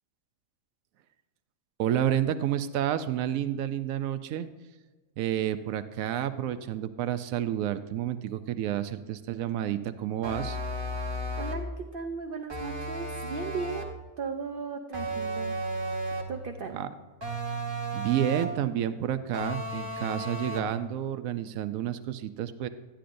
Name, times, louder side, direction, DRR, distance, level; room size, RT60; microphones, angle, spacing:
voice 1, 1.8-4.5 5.2-10.6 16.7-16.9 17.9-22.7, right 11 dB, 80° right, 11 dB, 1.0 m, -30 dB
sound 1, 10.2-11.7 12.5-14.0 14.9-16.4 17.2-18.6 19.3-20.8, right 1 dB, 20° right, 0.8 m, -34 dB
voice 2, 11.4-15.6 16.3-16.8, right 5 dB, 60° right, 5 dB, 0.6 m, -36 dB
11.5 x 9.9 x 2.6 m, 1.3 s
omnidirectional pair, 1.4 m